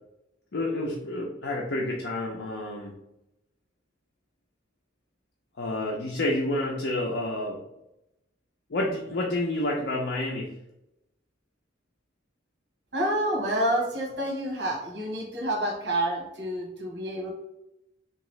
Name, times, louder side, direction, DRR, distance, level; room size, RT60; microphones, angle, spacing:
voice 1, 0.5-2.9 5.6-7.6 8.7-10.5, left 1 dB, 85° left, -1 dB, 0.6 m, -29 dB
voice 2, 12.9-17.3, right 1 dB, 80° right, 0 dB, 1.1 m, -28 dB
3.6 x 2.9 x 3.1 m, 0.87 s
head